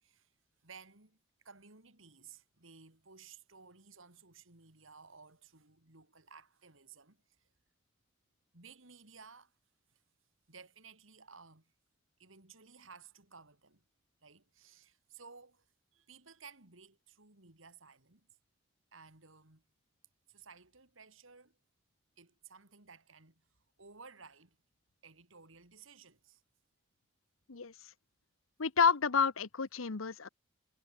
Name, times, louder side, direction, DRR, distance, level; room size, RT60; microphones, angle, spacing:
voice 1, 0.6-1.2 1.4-7.2 8.5-9.5 10.5-11.7 12.2-13.8 14.2-15.7 15.9-18.3 18.9-19.6 20.3-21.6 22.2-23.4 23.8-24.6 25.0-26.4, right 5 dB, 80° right, 3.5 m, -56 dB
voice 2, 28.6-30.3, left 6 dB, 90° left, 1.0 m, -29 dB
head